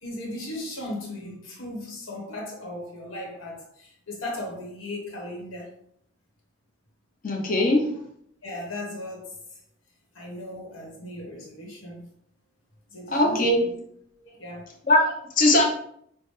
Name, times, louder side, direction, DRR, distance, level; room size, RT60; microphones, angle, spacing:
voice 1, 0.0-5.7 8.4-9.3 10.1-12.1 12.9-13.7 14.2-14.7, left 1 dB, 75° left, 1.4 m, -37 dB
voice 2, 7.2-7.8 13.1-13.6 14.9-15.7, left 1 dB, 40° left, 0.8 m, -20 dB
6.0 x 2.2 x 3.2 m
head